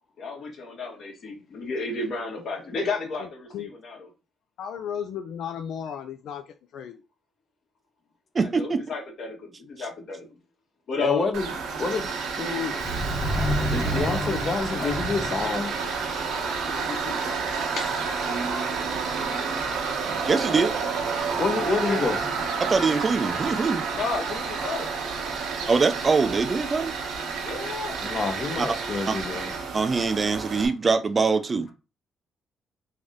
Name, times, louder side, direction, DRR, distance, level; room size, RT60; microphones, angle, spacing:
voice 1, 0.2-4.1 8.4-10.3 10.9-11.3 16.3-17.4 17.8-18.5 21.6-22.0 23.9-24.9 27.4-28.0 29.9-30.0, left 4 dB, 60° left, 1.5 m, -33 dB
voice 2, 3.2-3.7 4.6-7.0, left 8 dB, 75° left, 0.3 m, -35 dB
voice 3, 8.3-8.8 9.8-9.9 20.3-20.7 22.6-23.9 25.7-26.9 28.6-28.7 29.1-29.2 29.7-31.7, right 4 dB, 35° right, 0.4 m, -23 dB
voice 4, 11.0-11.5 11.8-12.1 12.4-12.8 13.7-15.7 21.4-22.2 28.0-29.5, left 4 dB, 45° left, 0.8 m, -27 dB
Tools, 11.3-30.7, right 5 dB, 90° right, 0.9 m, -30 dB
Subway metro underground, 12.8-23.4, equal, 20° left, 1.0 m, -34 dB
3.4 x 2.7 x 3.6 m
cardioid pair, 90°, 0 cm